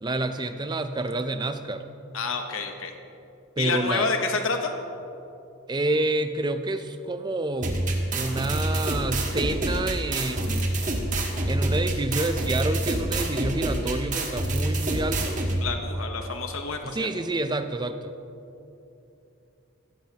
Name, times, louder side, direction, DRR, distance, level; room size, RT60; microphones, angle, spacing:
voice 1, 0.0-1.8 3.6-4.1 5.7-7.8 8.1-10.7 11.5-15.4 16.8-18.1, right 2 dB, 20° right, 9 dB, 0.5 m, -28 dB
voice 2, 2.1-2.9 3.6-4.7 15.6-16.8, left 4 dB, 65° left, 5 dB, 1.0 m, -28 dB
sound 1, 7.6-15.6, right 1 dB, 35° right, 1.4 m, -27 dB
16.0 x 15.0 x 2.9 m, 2.8 s
head